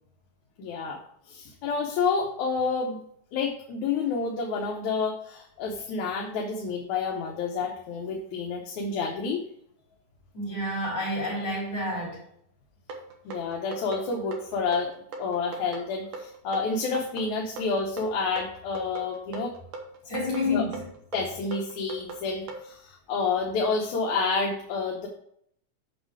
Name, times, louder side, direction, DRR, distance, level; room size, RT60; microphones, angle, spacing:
voice 1, 0.6-3.0 3.3-9.4 13.3-14.9 15.2-19.5 20.5-20.6 21.1-25.1, left 4 dB, 75° left, 2.3 m, -29 dB
voice 2, 10.3-12.2 20.0-20.9, left 2 dB, 35° left, 4.5 m, -29 dB
sound 1, 12.9-22.7, right 2 dB, 85° right, 2.7 m, -40 dB
7.9 x 6.0 x 4.7 m
omnidirectional pair, 3.4 m